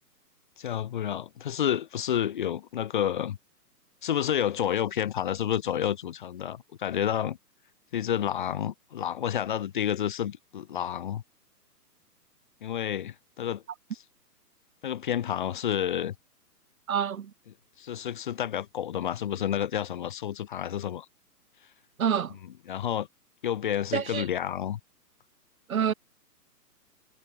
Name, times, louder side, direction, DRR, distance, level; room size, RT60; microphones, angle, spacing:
voice 1, 0.6-3.4 4.0-7.4 7.9-11.2 12.6-13.6 13.9-14.0 14.8-16.1 17.8-21.1 22.4-23.1 23.4-24.8, left 10 dB, 30° left, 1.8 m, -30 dB
voice 2, 16.9-17.3 22.0-22.4 23.9-24.2 25.7-25.9, right 8 dB, 60° right, 2.0 m, -27 dB
hypercardioid pair, 175°, 48 cm